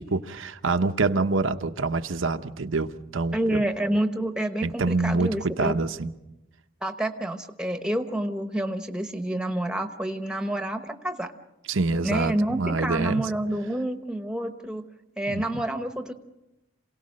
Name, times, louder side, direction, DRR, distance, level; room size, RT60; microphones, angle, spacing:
voice 1, 0.0-3.6 4.6-6.1 11.7-13.3 15.3-15.4, right 3 dB, 80° right, 7 dB, 0.8 m, -26 dB
voice 2, 3.3-5.8 6.8-11.3 12.0-14.8 15.2-16.1, right 1 dB, 5° right, 6 dB, 1.1 m, -28 dB
27.5 x 18.0 x 6.5 m, 0.96 s
head